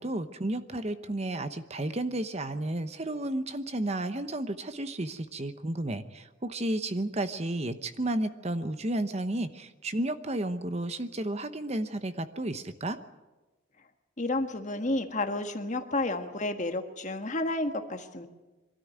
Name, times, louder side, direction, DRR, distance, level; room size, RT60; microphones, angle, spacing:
voice 1, 0.0-13.0, right 1 dB, 35° right, 10 dB, 0.9 m, -32 dB
voice 2, 14.2-18.3, left 2 dB, 40° left, 7 dB, 1.5 m, -31 dB
23.0 x 13.0 x 9.5 m, 1.2 s
head